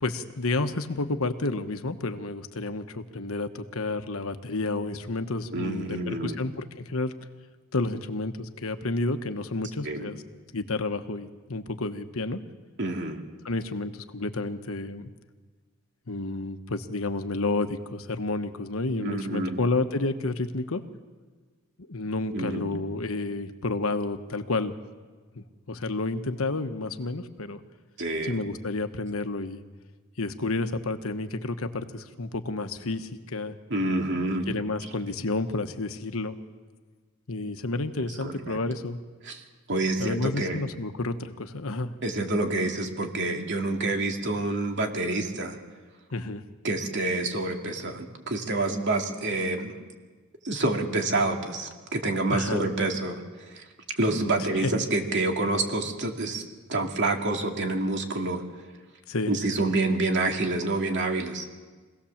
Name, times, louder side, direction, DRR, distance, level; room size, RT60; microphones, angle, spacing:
voice 1, 0.0-7.1 7.7-10.2 10.5-12.4 13.4-15.1 16.1-20.8 21.9-24.8 25.3-27.6 28.2-29.6 30.2-33.5 34.5-36.4 37.3-39.0 40.0-41.9 46.1-46.4 52.3-52.7 54.6-54.7 59.1-59.3, left 2 dB, 70° left, 9 dB, 1.2 m, -30 dB
voice 2, 5.5-6.4 9.8-10.1 12.8-13.2 18.9-19.6 22.3-22.8 28.0-28.4 33.7-34.5 38.0-38.6 39.2-39.4 39.7-40.6 42.0-45.6 46.6-49.7 50.4-53.6 54.0-56.4 56.7-58.4 59.3-61.4, right 2 dB, 55° right, 3 dB, 2.5 m, -28 dB
25.5 x 17.5 x 7.3 m, 1.4 s
head